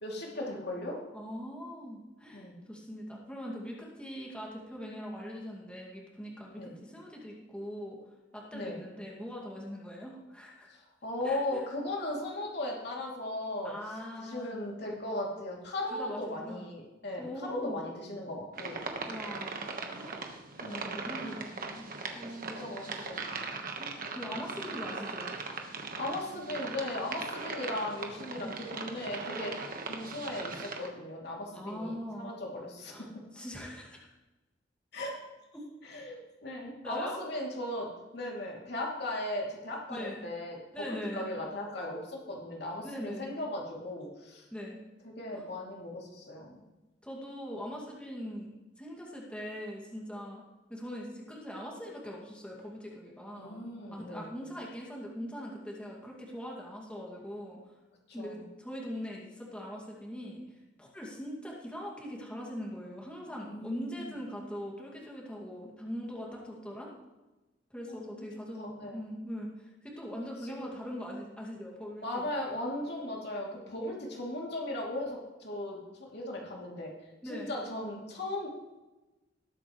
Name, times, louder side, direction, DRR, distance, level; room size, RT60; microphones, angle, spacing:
voice 1, 0.0-1.0 2.3-2.6 6.6-6.7 8.5-8.8 10.7-13.7 14.2-18.8 20.6-21.2 22.4-23.2 24.6-24.9 26.0-29.5 29.8-32.9 34.9-35.1 35.8-37.9 38.1-40.6 40.9-44.5 45.0-46.6 53.3-54.3 58.2-58.4 63.4-64.2 66.5-66.6 67.9-68.3 68.6-69.0 70.4-70.7 72.0-76.9 77.2-78.5, left 1 dB, 60° left, -2 dB, 2.8 m, -37 dB
voice 2, 1.1-8.0 8.3-10.7 11.2-11.6 13.6-14.5 15.9-16.7 17.2-17.8 19.1-20.3 20.8-21.9 22.1-22.8 23.8-25.3 28.4-28.6 31.5-32.3 32.9-33.1 33.3-34.0 35.5-35.6 36.8-37.2 39.9-40.2 40.7-41.3 42.8-43.3 44.5-44.8 45.3-45.5 47.0-50.4 50.7-53.6 53.9-57.6 58.1-60.4 60.8-66.9 67.7-72.3 77.2-77.5, equal, 5° left, -3 dB, 2.2 m, -41 dB
sound 1, 18.5-30.9, right 4 dB, 50° right, 1.3 m, -39 dB
19.5 x 8.5 x 3.2 m, 1.1 s
head